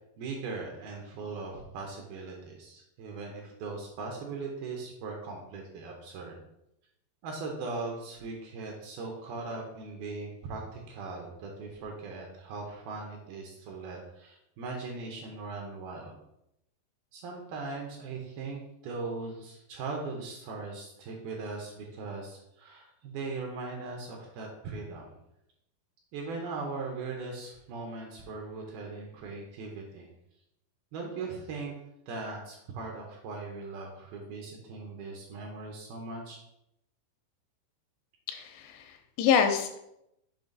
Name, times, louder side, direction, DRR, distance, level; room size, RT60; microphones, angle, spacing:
voice 1, 0.2-6.4 7.2-16.2 17.1-25.1 26.1-30.1 30.9-31.7 32.1-36.4, right 3 dB, 75° right, 1 dB, 2.4 m, -39 dB
voice 2, 38.3-39.8, left 7 dB, 85° left, 6 dB, 2.7 m, -27 dB
7.2 x 3.0 x 5.2 m, 0.82 s
omnidirectional pair, 5.0 m